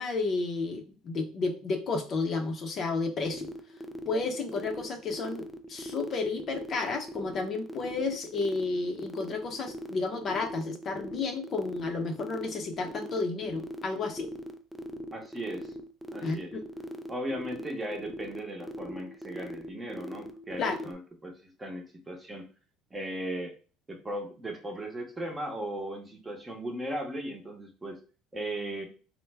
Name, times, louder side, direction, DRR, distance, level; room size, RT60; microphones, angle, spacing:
voice 1, 0.0-3.5 4.1-14.3 16.2-16.6 20.6-20.8, left 3 dB, 45° left, 5 dB, 0.6 m, -32 dB
sound 1, 3.2-20.9, equal, ahead, 0.4 m, -40 dB
voice 2, 15.1-15.7 16.1-16.5 17.1-22.5 22.9-23.5 23.9-28.0 28.3-28.8, right 1 dB, 15° right, 2 dB, 0.8 m, -37 dB
3.3 x 2.1 x 3.3 m, 0.37 s
cardioid pair, 115°, 0 cm